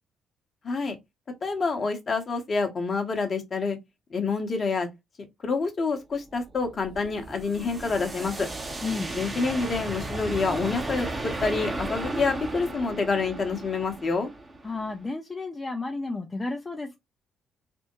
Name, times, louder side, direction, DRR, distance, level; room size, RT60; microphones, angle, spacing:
voice 1, 0.6-1.0 1.4-3.8 4.1-4.9 5.4-8.5 9.1-14.3, left 4 dB, 40° left, 0.9 m, -27 dB
sound 1, 6.1-15.1, right 2 dB, 25° right, 0.8 m, -35 dB
voice 2, 14.6-17.0, left 3 dB, 25° left, 0.5 m, -32 dB
3.4 x 2.1 x 3.1 m
figure-of-eight pair, 45°, 0 cm